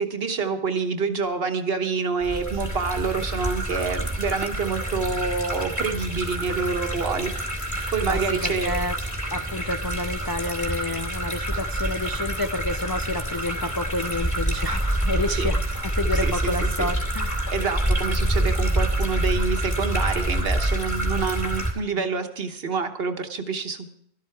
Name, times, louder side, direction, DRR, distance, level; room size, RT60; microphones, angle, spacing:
voice 1, 0.0-7.3 7.9-8.7 15.3-15.5 16.1-16.9 17.5-23.9, right 5 dB, 65° right, 7 dB, 1.3 m, -27 dB
sound 1, 2.2-21.7, right 1 dB, 15° left, 2.4 m, -27 dB
voice 2, 8.1-8.9 9.3-17.4, left 2 dB, 40° left, 7 dB, 0.3 m, -29 dB
13.0 x 12.5 x 4.6 m, 0.70 s
omnidirectional pair, 1.1 m